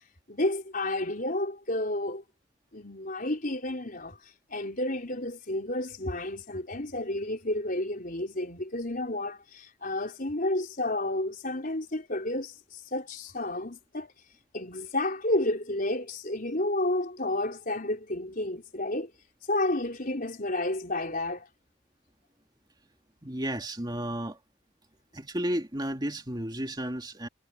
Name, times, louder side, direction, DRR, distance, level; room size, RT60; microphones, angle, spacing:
voice 1, 0.3-2.2 2.7-4.2 4.5-14.1 14.5-19.1 19.5-21.5, left 1 dB, 45° left, 4.3 m, -31 dB
voice 2, 23.2-24.4 25.1-27.3, right 1 dB, 20° right, 2.7 m, -33 dB
head